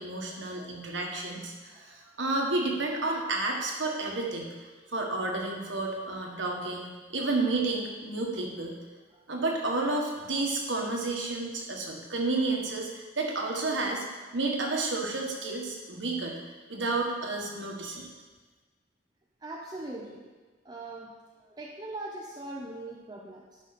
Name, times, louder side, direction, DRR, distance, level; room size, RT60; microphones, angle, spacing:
voice 1, 0.0-8.8 9.3-14.0 14.3-16.3 16.7-18.1, right 2 dB, 80° right, 0 dB, 1.5 m, -31 dB
voice 2, 1.7-2.1 9.1-9.2 19.4-20.3 20.6-23.6, right 2 dB, 20° right, -2 dB, 0.7 m, -41 dB
11.0 x 5.5 x 4.2 m, 1.3 s
head